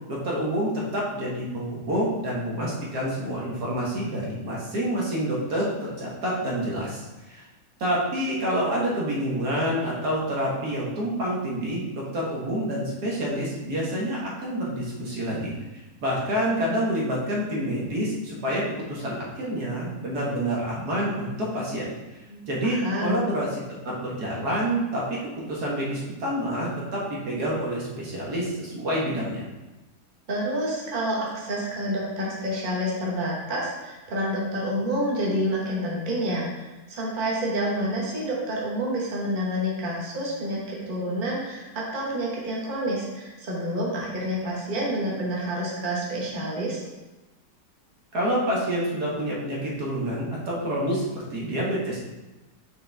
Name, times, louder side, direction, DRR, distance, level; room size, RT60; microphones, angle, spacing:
voice 1, 0.1-7.4 7.8-15.5 16.0-21.9 22.5-25.0 25.4-29.4 48.1-52.0, equal, 70° right, -5 dB, 1.8 m, -28 dB
voice 2, 22.3-23.2 30.3-46.8, equal, 30° right, -4 dB, 1.3 m, -28 dB
6.5 x 4.4 x 3.4 m, 1.1 s
omnidirectional pair, 1.8 m